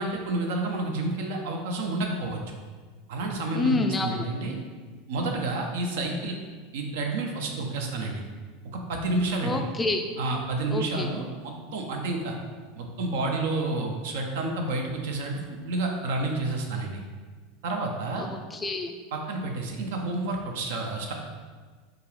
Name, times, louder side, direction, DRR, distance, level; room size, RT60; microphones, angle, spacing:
voice 1, 0.0-2.5 3.1-4.6 5.1-6.4 6.7-8.2 8.7-9.6 10.2-12.3 12.8-17.0 17.6-18.3 19.1-21.1, right 2 dB, 65° right, 2 dB, 0.6 m, -30 dB
voice 2, 3.5-4.3 9.4-10.1 10.7-11.1 18.2-18.9, left 2 dB, 15° left, 5 dB, 0.3 m, -28 dB
4.6 x 2.5 x 3.1 m, 1.5 s
figure-of-eight pair, 80°, 0 cm